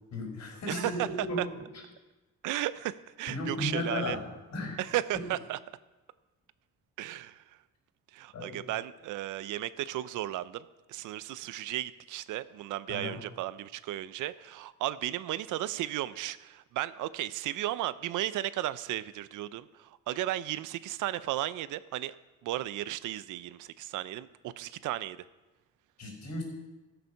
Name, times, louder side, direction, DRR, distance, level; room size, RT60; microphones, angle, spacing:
voice 1, 0.1-1.5 1.7-1.8 3.3-4.8 8.3-8.6 12.9-13.2 26.0-26.4, left 1 dB, 65° left, 1 dB, 4.9 m, -35 dB
voice 2, 0.7-1.1 2.4-4.2 4.8-5.6 7.0-7.4 8.1-22.2 22.4-25.2, right 14 dB, 85° right, 16 dB, 0.6 m, -35 dB
14.5 x 6.7 x 5.6 m, 1.1 s
cardioid pair, 90°, 30 cm